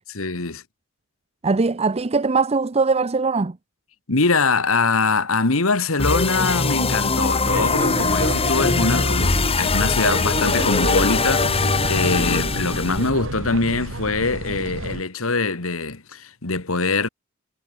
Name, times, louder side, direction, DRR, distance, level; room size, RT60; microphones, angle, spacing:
voice 1, 0.1-0.6 4.1-17.1, left 3 dB, 75° left, 2.2 m, -23 dB
voice 2, 1.4-3.6, right 4 dB, 30° right, 0.6 m, -21 dB
sound 1, 6.0-13.1, left 3 dB, 30° left, 1.3 m, -21 dB
sound 2, 7.4-15.0, right 2 dB, 65° right, 3.5 m, -30 dB
head